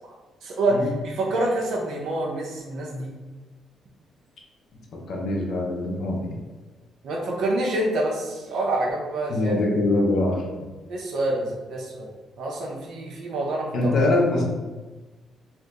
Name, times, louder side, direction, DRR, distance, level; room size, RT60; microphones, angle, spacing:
voice 1, 0.4-3.1 7.0-9.5 10.9-12.1 12.4-13.9, right 2 dB, 70° right, -1 dB, 0.8 m, -27 dB
voice 2, 4.7-6.3 9.3-10.5 13.7-14.4, left 2 dB, 65° left, -1 dB, 0.8 m, -23 dB
2.7 x 2.7 x 3.6 m, 1.2 s
cardioid pair, 90°, 0 cm